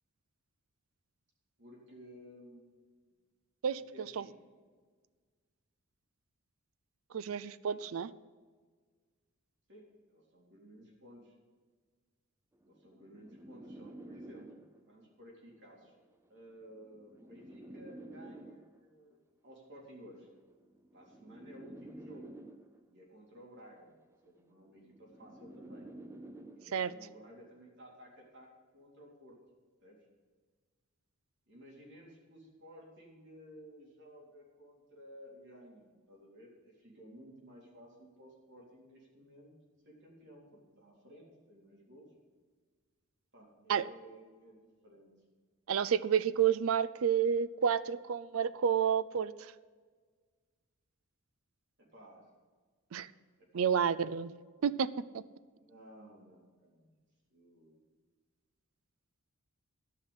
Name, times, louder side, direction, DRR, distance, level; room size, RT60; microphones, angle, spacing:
voice 1, 1.6-3.1 3.9-4.4 7.6-7.9 9.7-9.8 10.1-11.4 12.7-15.9 16.3-19.2 19.4-20.3 20.9-22.3 22.9-23.9 24.2-25.9 26.5-28.5 28.7-29.4 29.8-30.0 31.5-39.5 39.8-42.1 43.3-45.1 51.8-52.2 53.4-54.1 54.5-54.7 55.6-56.9 57.3-57.8, equal, 55° right, -2 dB, 3.6 m, -55 dB
voice 2, 7.1-8.1 26.7-26.9 43.7-43.8 45.7-49.3 52.9-53.1 53.5-54.3 54.6-54.9 55.1-55.2, right 7 dB, 70° right, 15 dB, 0.4 m, -30 dB
sound 1, 12.6-15.0 16.0-19.0 20.0-23.0 24.0-27.0, right 1 dB, 10° right, 0.5 m, -51 dB
13.0 x 5.7 x 9.5 m, 1.5 s
head